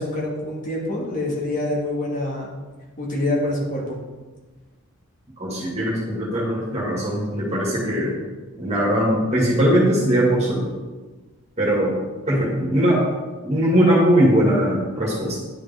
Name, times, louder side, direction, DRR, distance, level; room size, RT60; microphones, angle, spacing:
voice 1, 0.0-2.5 3.0-4.0, left 1 dB, 40° left, -2 dB, 1.7 m, -26 dB
voice 2, 5.4-8.1 8.6-10.7 11.6-11.9 12.3-13.0 13.4-15.4, equal, 30° right, -5 dB, 1.9 m, -20 dB
10.0 x 5.1 x 3.5 m, 1.3 s
head